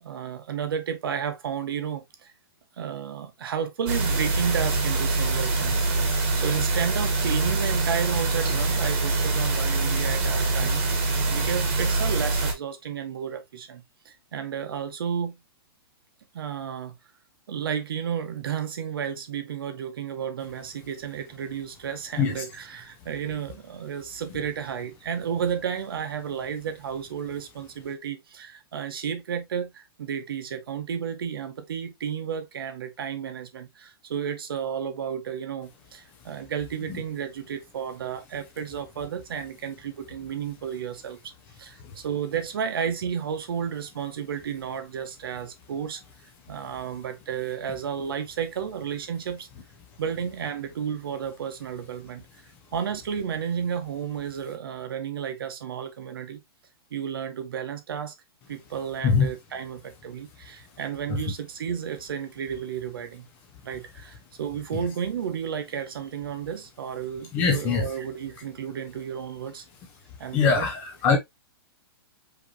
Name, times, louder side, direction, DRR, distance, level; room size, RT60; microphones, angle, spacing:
voice 1, 0.0-2.3 2.8-5.9 6.3-15.4 16.3-17.0 17.5-41.2 41.6-46.0 46.5-49.5 50.0-52.2 52.7-56.4 56.9-58.1 58.5-63.3 63.6-69.6 70.2-70.7, right 8 dB, 65° right, 1.0 m, -32 dB
sound 1, 3.9-12.5, right 3 dB, 30° right, 1.2 m, -24 dB
voice 2, 67.3-67.9 70.3-71.2, left 5 dB, 15° left, 0.4 m, -22 dB
5.0 x 3.0 x 2.6 m
hypercardioid pair, 180°, 13 cm